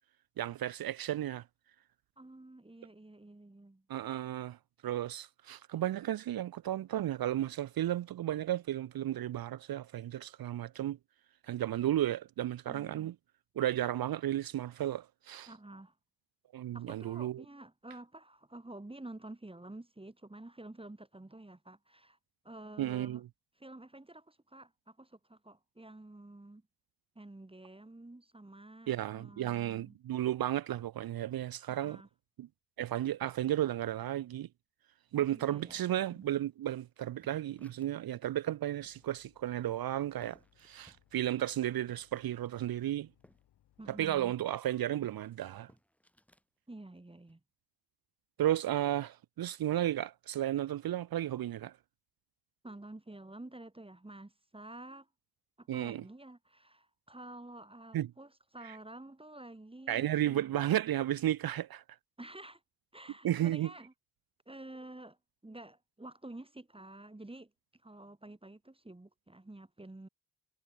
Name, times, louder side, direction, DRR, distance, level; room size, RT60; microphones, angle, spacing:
voice 1, 0.4-1.4 3.9-4.6 4.8-11.0 11.5-13.1 13.6-15.5 16.5-17.4 22.8-23.2 28.9-32.0 32.4-32.5 32.8-34.5 35.1-43.1 43.9-45.7 48.4-51.7 55.7-56.0 57.9-58.1 59.9-61.8 63.2-63.7, right 12 dB, 65° right, 0.6 m, -33 dB
voice 2, 2.2-3.8 12.7-13.1 15.5-15.9 16.7-22.2 22.4-23.2 23.6-26.6 27.1-30.0 31.7-32.1 35.3-36.3 43.8-44.3 46.7-47.4 52.6-55.1 55.6-60.5 62.2-62.6 62.9-63.9 64.5-65.2 65.4-67.5 67.8-70.1, right 2 dB, 15° right, 1.4 m, -50 dB
sound 1, 35.3-38.1 38.5-38.6 38.9-43.4 43.7-46.5 46.9-47.3, equal, 5° left, 7.6 m, -66 dB
sound 2, 38.8-44.3, left 13 dB, 90° left, 5.6 m, -70 dB
supercardioid pair, 40°, 39 cm